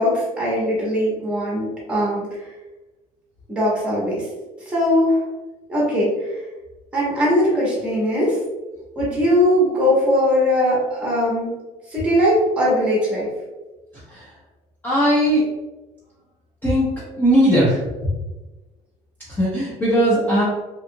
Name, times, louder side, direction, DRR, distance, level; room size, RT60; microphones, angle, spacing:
voice 1, 0.0-2.5 3.5-4.3 4.7-5.2 5.7-6.4 6.9-8.4 9.0-11.5 11.9-13.3, equal, 5° right, -5 dB, 1.0 m, -20 dB
voice 2, 14.8-15.4 16.6-16.9 17.2-17.8 19.3-20.4, equal, 10° left, -9 dB, 0.6 m, -18 dB
2.8 x 2.3 x 2.6 m, 1.1 s
cardioid pair, 160°, 15 cm